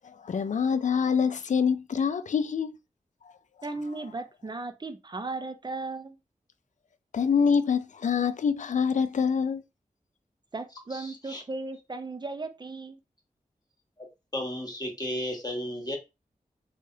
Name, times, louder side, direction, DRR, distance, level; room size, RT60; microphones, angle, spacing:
voice 1, 0.0-2.7 7.1-9.6, left 6 dB, 60° left, 0.4 m, -25 dB
voice 2, 3.6-6.2 10.5-13.0, right 3 dB, 30° right, 0.5 m, -36 dB
voice 3, 10.9-11.4 14.0-14.1 14.3-16.0, left 1 dB, 30° left, 1.3 m, -34 dB
3.2 x 2.3 x 2.7 m
cardioid pair, 45°, 14 cm